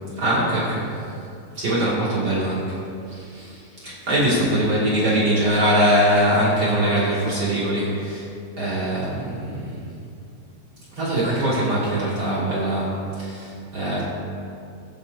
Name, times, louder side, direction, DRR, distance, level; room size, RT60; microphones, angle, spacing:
voice 1, 0.2-0.9 1.5-2.8 3.1-8.2 8.6-9.9 10.9-14.0, right 1 dB, 35° right, -8 dB, 2.0 m, -22 dB
22.0 x 7.9 x 2.8 m, 2.5 s
omnidirectional pair, 5.5 m